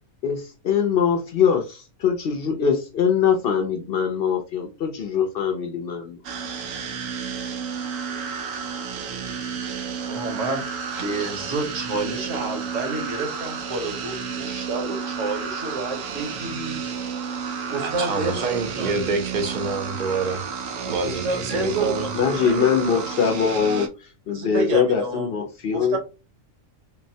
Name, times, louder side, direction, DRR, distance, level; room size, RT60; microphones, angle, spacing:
voice 1, 0.2-6.2 22.1-23.9 24.3-26.0, left 7 dB, 60° left, 0.6 m, -22 dB
sound 1, 6.2-23.9, right 6 dB, 90° right, 1.0 m, -32 dB
voice 2, 10.0-16.8 17.7-18.9 20.8-23.0 24.3-25.3 25.7-26.0, right 3 dB, 75° right, 1.2 m, -29 dB
voice 3, 17.8-20.4 20.8-22.1, right 4 dB, 50° right, 0.6 m, -27 dB
3.8 x 2.0 x 2.6 m
omnidirectional pair, 1.3 m